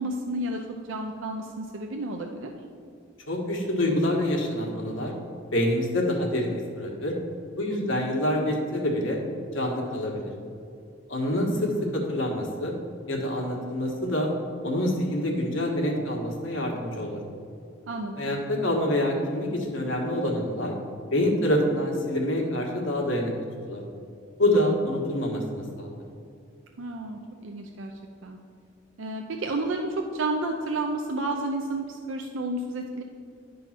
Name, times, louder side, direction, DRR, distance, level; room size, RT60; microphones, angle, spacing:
voice 1, 0.0-2.5 7.7-8.1 17.9-18.2 26.8-27.9 28.2-28.4 29.0-33.0, right 2 dB, 85° right, 2 dB, 0.6 m, -31 dB
voice 2, 3.3-5.1 5.5-7.2 7.6-9.2 9.5-10.3 11.1-12.7 13.1-14.3 14.6-17.2 18.2-20.8 21.1-23.3 23.7-23.8 24.4-26.0, left 1 dB, 85° left, 0 dB, 1.5 m, -26 dB
11.0 x 3.9 x 5.7 m, 2.5 s
head